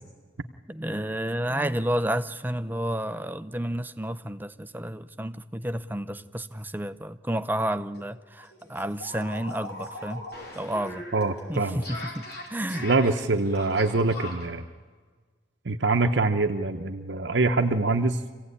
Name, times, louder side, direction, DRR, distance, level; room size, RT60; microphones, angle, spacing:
voice 1, 0.7-10.3 10.6-11.1 11.5-12.9, right 1 dB, 10° right, 0.6 m, -31 dB
sound 1, 7.5-7.7 7.9-8.0 8.4-14.5, left 1 dB, 55° left, 4.9 m, -40 dB
voice 2, 11.1-11.8 12.8-14.6 15.7-18.2, right 3 dB, 60° right, 0.9 m, -24 dB
25.5 x 16.5 x 9.8 m
head